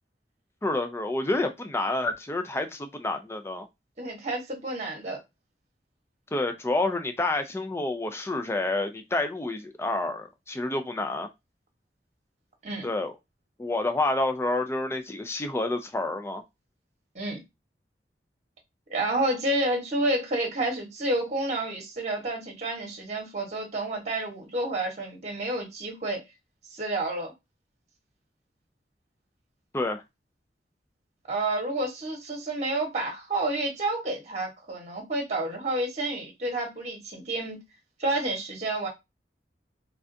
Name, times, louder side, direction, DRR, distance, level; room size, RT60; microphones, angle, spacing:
voice 1, 0.6-3.7 6.3-11.3 12.8-13.1 13.6-16.4 29.7-30.0, left 2 dB, 15° left, 0.4 m, -28 dB
voice 2, 4.0-5.2 12.6-12.9 17.1-17.4 18.9-26.2 26.7-27.3 31.3-37.6 38.0-38.9, right 2 dB, 40° right, 1.0 m, -29 dB
3.3 x 2.4 x 2.5 m
head